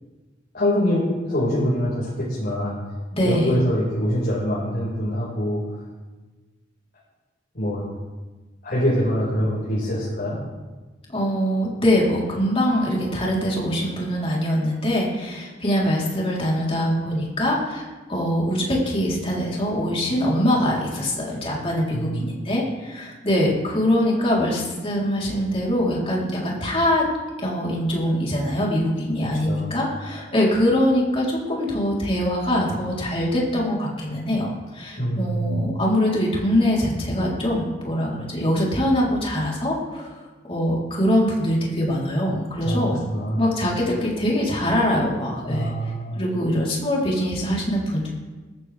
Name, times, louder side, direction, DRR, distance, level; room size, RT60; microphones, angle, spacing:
voice 1, 0.5-2.8 3.2-5.6 7.5-7.8 8.6-10.4 20.1-20.3 21.9-22.4 29.4-29.8 35.0-35.6 42.6-43.5 45.4-46.2, equal, 55° left, -8 dB, 5.2 m, -24 dB
voice 2, 3.1-3.6 11.1-27.1 27.4-40.2 40.5-43.0 43.4-45.7 46.2-48.1, equal, 30° left, -4 dB, 3.9 m, -23 dB
19.5 x 13.5 x 3.5 m, 1.3 s
head